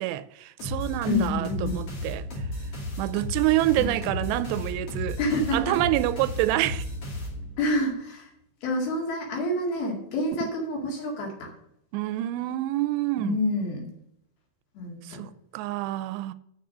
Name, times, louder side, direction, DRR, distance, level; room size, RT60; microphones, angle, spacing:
voice 1, 0.0-2.3 3.0-5.2 5.5-6.8 10.4-10.5 11.9-13.4 15.0-16.3, right 16 dB, 90° right, 2.7 m, -27 dB
sound 1, 0.6-7.8, left 1 dB, 40° left, 2.9 m, -34 dB
voice 2, 1.1-1.8 3.8-4.2 5.2-5.8 7.6-8.3 8.6-11.5 13.2-13.9 14.8-15.3, left 1 dB, 65° left, 3.8 m, -28 dB
7.3 x 6.6 x 7.2 m
omnidirectional pair, 4.9 m